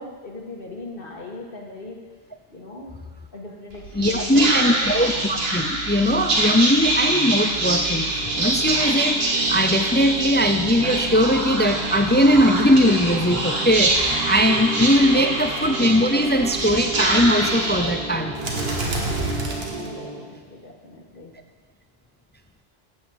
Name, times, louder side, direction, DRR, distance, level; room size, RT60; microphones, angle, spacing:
voice 1, 0.0-2.0 2.5-2.9 3.3-5.0 14.9-15.4 19.8-21.3, left 2 dB, 55° left, -1 dB, 1.8 m, -39 dB
Whispering, 3.7-20.3, right 2 dB, 65° right, 1.8 m, -25 dB
voice 2, 3.9-18.3, equal, 15° left, 6 dB, 0.3 m, -20 dB
9.7 x 7.3 x 8.0 m, 1.4 s
omnidirectional pair, 1.1 m